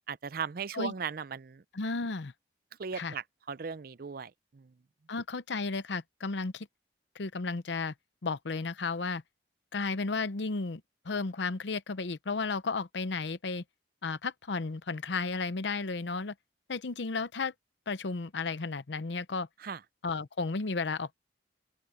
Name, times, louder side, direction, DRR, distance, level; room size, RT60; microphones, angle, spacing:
voice 1, 0.1-1.6 2.8-4.7 19.6-19.8, right 6 dB, 55° right, 0.5 m, -37 dB
voice 2, 1.7-2.3 2.9-3.1 5.1-6.7 7.1-7.9 8.2-9.2 9.7-13.6 14.0-16.3 16.7-17.5 17.9-19.5 20.0-21.1, left 4 dB, 80° left, 0.8 m, -33 dB
open air
head